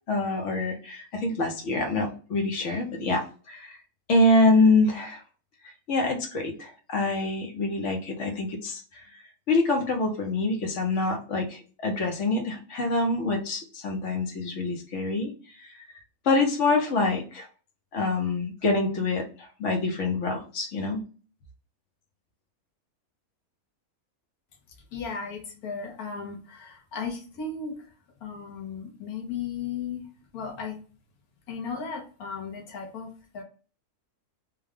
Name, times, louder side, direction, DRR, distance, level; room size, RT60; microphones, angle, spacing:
voice 1, 0.1-3.2 3.5-3.8 4.1-5.2 5.9-9.0 9.5-15.3 15.6-15.7 16.2-17.5 17.9-21.0, left 2 dB, 60° left, 2 dB, 1.1 m, -25 dB
voice 2, 24.9-27.8 28.2-30.1 30.3-30.8 31.5-33.4, left 5 dB, 75° left, 2 dB, 1.4 m, -35 dB
3.5 x 2.3 x 3.5 m, 0.38 s
omnidirectional pair, 1.6 m